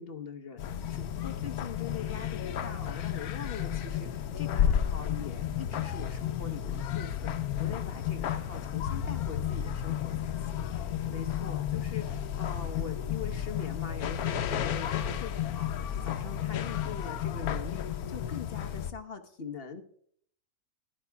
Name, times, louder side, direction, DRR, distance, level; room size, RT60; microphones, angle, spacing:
voice 1, 0.0-19.8, left 6 dB, 45° left, 7 dB, 1.1 m, -43 dB
sound 1, 0.6-18.9, left 9 dB, 90° left, 1.2 m, -32 dB
14.5 x 11.5 x 3.5 m, 0.62 s
omnidirectional pair, 1.5 m